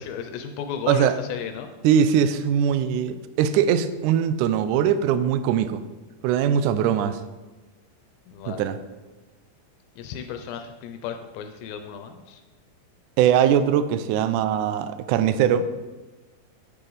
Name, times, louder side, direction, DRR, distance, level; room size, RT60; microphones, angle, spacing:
voice 1, 0.0-1.7 8.3-8.7 10.0-12.4, left 7 dB, 90° left, 6 dB, 2.5 m, -34 dB
voice 2, 1.8-5.8 6.2-7.2 8.5-8.8 13.2-15.7, right 8 dB, 85° right, 12 dB, 1.7 m, -21 dB
9.0 x 7.9 x 3.9 m, 1.2 s
omnidirectional pair, 4.2 m